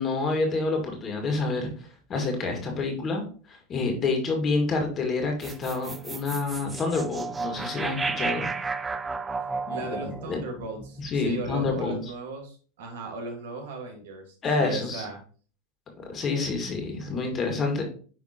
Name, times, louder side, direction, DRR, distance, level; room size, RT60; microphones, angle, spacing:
voice 1, 0.0-8.5 9.7-10.4 11.0-12.0 14.4-15.1 16.0-17.8, left 3 dB, 30° left, 3 dB, 1.9 m, -28 dB
sound 1, 5.4-11.7, right 4 dB, 15° right, 0.4 m, -33 dB
voice 2, 9.7-15.2, right 3 dB, 80° right, 3 dB, 2.1 m, -37 dB
9.9 x 3.4 x 2.9 m, 0.41 s
supercardioid pair, 115°, 0 cm